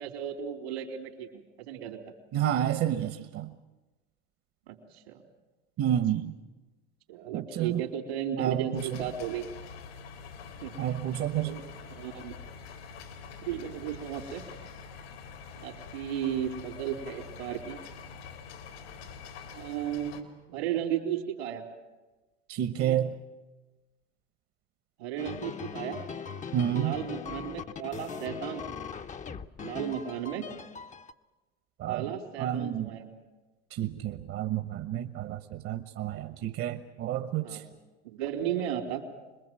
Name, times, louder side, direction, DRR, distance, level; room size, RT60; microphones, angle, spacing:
voice 1, 0.0-2.0 4.7-5.2 7.1-9.4 10.6-10.8 11.4-12.4 13.4-14.4 15.6-17.8 19.5-21.6 22.8-23.0 25.0-26.0 26.7-29.0 29.6-30.5 31.9-33.1 36.2-36.3 37.4-37.6 38.0-39.0, right 10 dB, 80° right, 5 dB, 3.8 m, -35 dB
voice 2, 2.3-3.5 5.8-6.3 7.3-7.8 8.4-9.0 10.8-11.6 22.5-23.1 26.5-26.9 31.8-32.0 32.4-32.9 33.7-37.6, right 11 dB, 45° right, 8 dB, 1.2 m, -30 dB
sound 1, 8.7-20.2, left 6 dB, 85° left, 3.4 m, -45 dB
sound 2, 25.2-31.1, left 6 dB, 25° left, 0.8 m, -40 dB
26.5 x 21.0 x 7.7 m, 1.2 s
hypercardioid pair, 95°, 31 cm